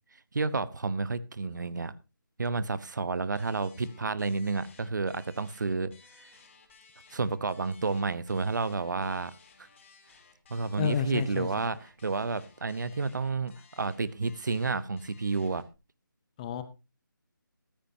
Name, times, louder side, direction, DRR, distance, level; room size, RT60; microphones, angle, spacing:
voice 1, 0.3-1.9 2.4-5.9 6.2-6.3 7.1-9.3 10.5-15.6, right 4 dB, 60° right, 1.0 m, -30 dB
sound 1, 3.4-15.8, left 5 dB, 35° left, 3.4 m, -58 dB
voice 2, 10.8-11.7 16.4-16.6, left 8 dB, 20° left, 1.0 m, -31 dB
14.5 x 13.5 x 2.8 m
figure-of-eight pair, 160°, 11 cm